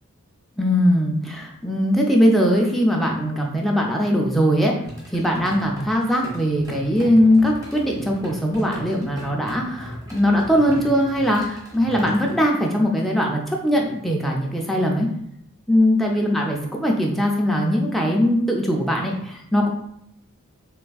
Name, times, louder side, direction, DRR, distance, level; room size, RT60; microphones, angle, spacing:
voice 1, 0.6-4.7 5.1-15.1 15.7-19.7, equal, ahead, -1 dB, 0.4 m, -20 dB
sound 1, 4.8-12.4, equal, 15° right, 0.8 m, -38 dB
3.4 x 3.1 x 2.3 m, 0.76 s
head